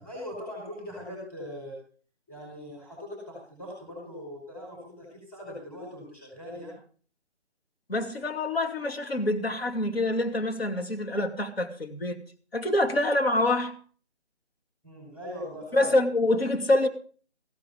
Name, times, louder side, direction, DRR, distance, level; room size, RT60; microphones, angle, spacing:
voice 1, 0.0-1.8 2.3-6.8 14.8-16.0, left 1 dB, 5° left, 5.1 m, -40 dB
voice 2, 7.9-12.2 12.5-13.7 15.7-16.9, left 1 dB, 60° left, 2.9 m, -26 dB
15.5 x 10.5 x 5.2 m
figure-of-eight pair, 155°, 34 cm